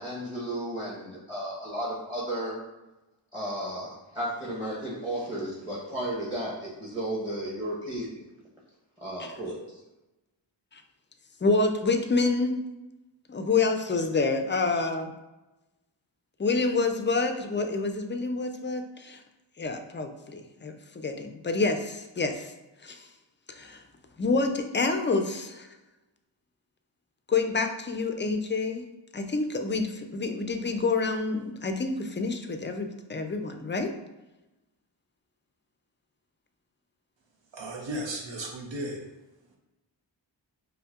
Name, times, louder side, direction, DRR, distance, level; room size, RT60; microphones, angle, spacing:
voice 1, 0.0-2.6 3.3-8.2 9.0-9.8, right 1 dB, 10° right, -6 dB, 0.9 m, -34 dB
voice 2, 11.4-12.6 13.3-15.1 16.4-19.2 19.6-22.5 22.8-23.1 23.5-23.8 24.2-25.7 27.3-28.8 29.1-33.9, left 3 dB, 25° left, 6 dB, 0.4 m, -28 dB
voice 3, 37.5-39.0, right 1 dB, 75° right, 1 dB, 0.8 m, -35 dB
5.3 x 2.1 x 2.4 m, 1.0 s
wide cardioid pair, 45°, 45 cm